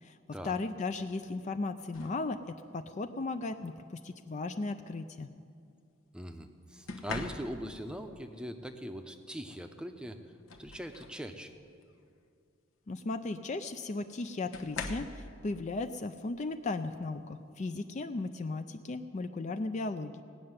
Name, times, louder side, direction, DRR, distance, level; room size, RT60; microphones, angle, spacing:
voice 1, 0.4-5.3 12.9-20.2, left 3 dB, 35° left, 9 dB, 0.4 m, -36 dB
sound 1, 1.9-2.3 3.5-3.8 6.9-7.9 9.6-9.7 10.1-11.3 11.7-12.0 13.4-13.5 14.5-15.3 17.0-17.1 17.6-17.9, left 4 dB, 85° left, 1.1 m, -42 dB
voice 2, 6.1-10.2 10.6-11.5, equal, 5° right, 6 dB, 0.7 m, -41 dB
17.5 x 6.6 x 9.6 m, 2.4 s
head